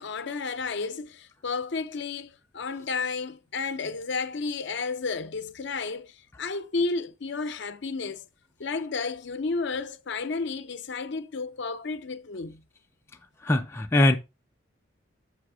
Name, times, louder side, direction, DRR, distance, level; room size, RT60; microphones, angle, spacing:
voice 1, 0.0-8.3 8.6-12.6, left 4 dB, 55° left, 0.6 m, -32 dB
voice 2, 13.4-14.2, left 1 dB, 10° left, 0.4 m, -21 dB
7.4 x 3.5 x 4.8 m
head